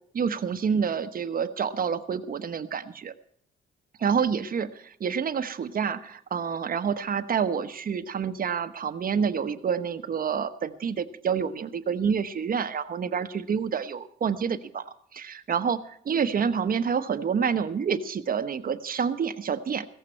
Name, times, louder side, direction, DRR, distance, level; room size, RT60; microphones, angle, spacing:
voice 1, 0.1-3.1 4.0-14.8 15.1-19.9, right 6 dB, 45° right, 10 dB, 1.1 m, -28 dB
16.0 x 14.5 x 4.5 m, 0.63 s
cardioid pair, 90°, 20 cm